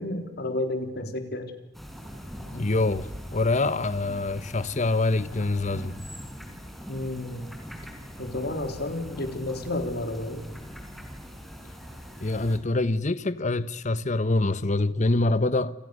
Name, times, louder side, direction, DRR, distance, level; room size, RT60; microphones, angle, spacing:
voice 1, 0.0-1.5 6.9-7.5 8.2-10.4, left 1 dB, 60° left, 4.0 m, -31 dB
sound 1, 1.7-12.6, equal, ahead, 5.1 m, -42 dB
voice 2, 2.5-5.9 12.2-15.7, left 2 dB, 40° left, 1.1 m, -25 dB
29.5 x 28.5 x 6.7 m
head